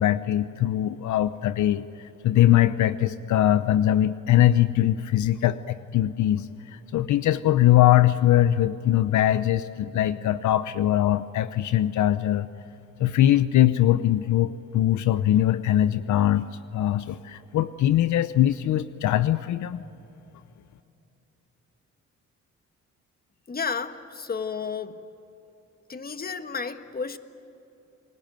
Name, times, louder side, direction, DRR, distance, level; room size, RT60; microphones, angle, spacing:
voice 1, 0.0-12.5 13.0-16.5 16.7-19.8, left 13 dB, 70° left, 13 dB, 0.8 m, -22 dB
voice 2, 23.5-25.0 25.9-27.2, left 5 dB, 30° left, 9 dB, 1.5 m, -32 dB
29.5 x 21.0 x 9.0 m, 3.0 s
cardioid pair, 90°, 30 cm